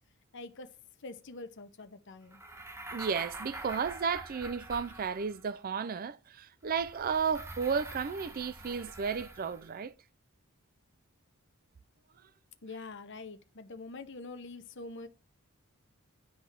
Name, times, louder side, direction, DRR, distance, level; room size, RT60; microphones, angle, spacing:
voice 1, 0.3-0.7 1.0-2.4 12.6-15.1, left 3 dB, 55° left, 0.8 m, -45 dB
sound 1, 2.3-5.6 6.6-9.8, right 1 dB, 10° right, 0.7 m, -46 dB
voice 2, 2.9-9.9, right 6 dB, 40° right, 0.4 m, -33 dB
10.0 x 3.5 x 5.8 m
head